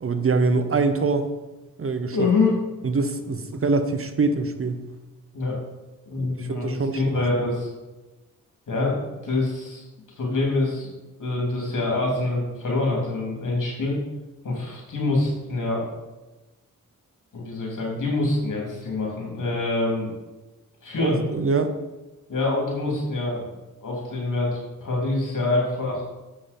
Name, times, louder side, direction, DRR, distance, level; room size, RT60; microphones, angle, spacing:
voice 1, 0.0-1.3 1.8-2.3 2.8-4.9 6.2-7.0 21.0-21.8, right 4 dB, 45° right, 9 dB, 0.8 m, -24 dB
voice 2, 2.1-2.6 5.3-5.6 6.0-7.7 8.7-9.8 10.2-10.9 11.2-14.0 14.4-15.8 17.3-20.1 20.8-21.2 22.3-23.5 23.8-26.0, left 2 dB, 70° left, -2 dB, 3.0 m, -25 dB
7.4 x 5.6 x 5.2 m, 1.1 s
cardioid pair, 60°, 32 cm